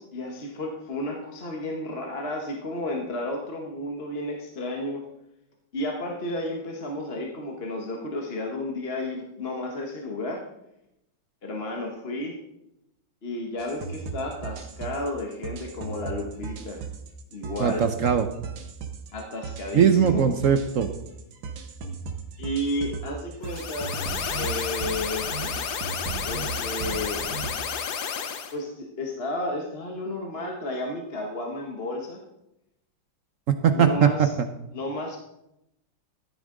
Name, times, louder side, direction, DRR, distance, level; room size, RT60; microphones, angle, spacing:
voice 1, 0.0-5.0 5.7-10.4 11.4-12.4 13.2-16.8 17.3-17.8 19.1-20.3 22.4-24.0 24.3-25.3 26.2-27.2 28.5-32.2 33.7-34.3 34.7-35.2, left 1 dB, 35° left, 1 dB, 1.3 m, -32 dB
sound 1, 13.6-27.5, right 5 dB, 90° right, 2.0 m, -36 dB
voice 2, 17.6-18.3 19.7-20.9 33.6-34.1, right 7 dB, 60° right, 8 dB, 0.8 m, -20 dB
sound 2, 23.4-28.5, left 7 dB, 60° left, 1.4 m, -31 dB
14.5 x 9.7 x 3.8 m, 0.86 s
omnidirectional pair, 2.0 m